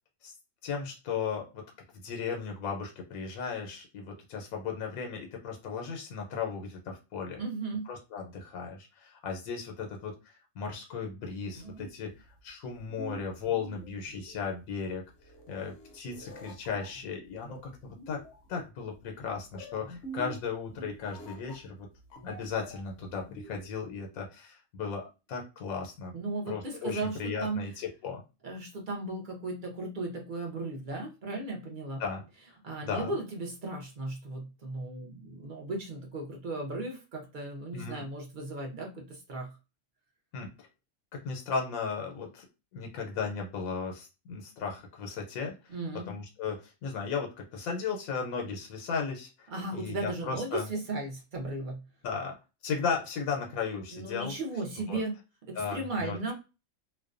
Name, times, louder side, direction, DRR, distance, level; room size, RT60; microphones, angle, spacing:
voice 1, 0.6-1.7 1.9-7.4 7.9-12.1 12.4-15.0 15.5-18.2 18.5-21.9 22.2-26.1 26.5-28.2 32.0-32.2 32.8-33.1 37.7-38.0 40.3-40.7 41.1-42.4 42.7-45.7 46.1-50.7 52.0-52.4 52.6-54.3 54.9-55.0 55.6-56.3, left 5 dB, 85° left, 1 dB, 1.0 m, -36 dB
voice 2, 7.4-7.9 26.1-27.6 28.4-32.0 32.6-39.6 45.7-46.1 49.5-51.8 53.9-55.1 55.5-56.3, right 2 dB, 55° right, 0 dB, 0.6 m, -36 dB
sound 1, 11.2-23.8, right 2 dB, 65° left, 0.8 m, -48 dB
2.5 x 2.1 x 2.4 m, 0.29 s
omnidirectional pair, 1.4 m